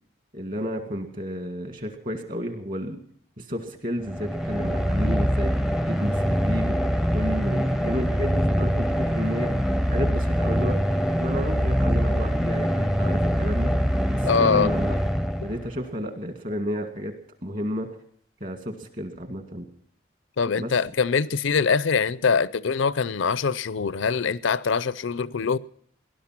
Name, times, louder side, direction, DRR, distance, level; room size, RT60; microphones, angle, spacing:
voice 1, 0.3-3.0 3.4-5.5 5.9-9.5 9.9-10.8 11.2-13.7 14.1-15.0 15.4-17.1 17.4-17.9 18.4-19.7 20.6-20.7, equal, 45° right, 2.1 m, -31 dB
sound 1, 4.0-15.9, equal, ahead, 0.6 m, -24 dB
voice 2, 14.2-14.7 20.4-25.6, left 5 dB, 80° left, 0.5 m, -23 dB
18.5 x 11.5 x 5.9 m
head